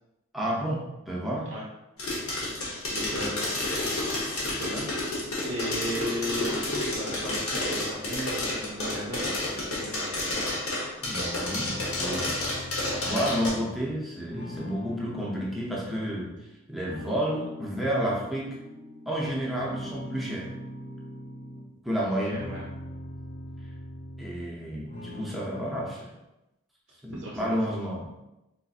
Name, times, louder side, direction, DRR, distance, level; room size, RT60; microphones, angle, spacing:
voice 1, 0.3-1.5 11.0-12.4 13.1-16.3 16.7-18.6 19.1-20.5 21.8-22.5 24.2-26.1 27.0-28.1, equal, ahead, -6 dB, 0.6 m, -31 dB
sound 1, 2.0-13.5, left 2 dB, 85° left, 1.0 m, -30 dB
voice 2, 2.9-3.6 4.3-10.4 22.3-22.7 27.1-27.8, equal, 55° right, -3 dB, 0.5 m, -37 dB
sound 2, 11.5-16.4 16.8-19.1 19.5-21.7 22.1-24.6 24.9-25.8, left 1 dB, 60° left, 1.2 m, -42 dB
4.0 x 2.6 x 2.4 m, 0.94 s
head